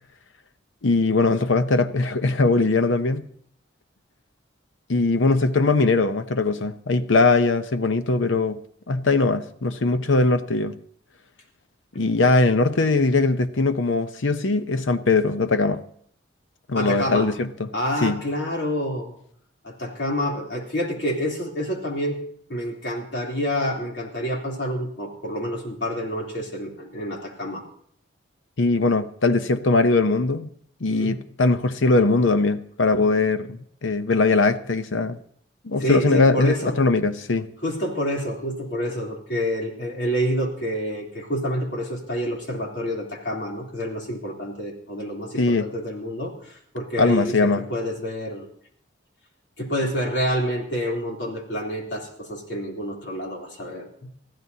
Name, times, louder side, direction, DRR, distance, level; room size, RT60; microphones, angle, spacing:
voice 1, 0.8-3.3 4.9-8.6 8.9-10.8 11.9-15.8 16.7-17.7 18.0-18.2 28.6-30.5 30.8-35.2 35.6-37.5 45.4-45.7 47.0-47.6, left 3 dB, 80° left, 0.8 m, -21 dB
voice 2, 16.7-17.3 17.7-19.1 19.6-22.2 22.5-27.6 30.9-31.2 35.8-36.7 37.6-48.5 49.6-54.1, equal, 60° left, 3.4 m, -28 dB
22.0 x 15.0 x 2.8 m
head